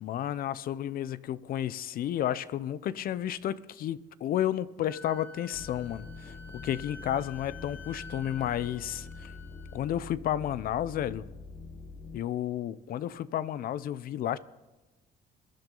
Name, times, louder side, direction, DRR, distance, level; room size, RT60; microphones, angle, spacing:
voice 1, 0.0-9.3 9.7-11.3 12.1-14.4, left 11 dB, 60° left, 0.7 m, -32 dB
Wind instrument woodwind instrument, 4.9-10.0, left 3 dB, 10° left, 1.8 m, -49 dB
sound 1, 5.5-12.2, left 4 dB, 40° left, 1.2 m, -45 dB
22.0 x 10.5 x 3.9 m
cardioid pair, 110°, 17 cm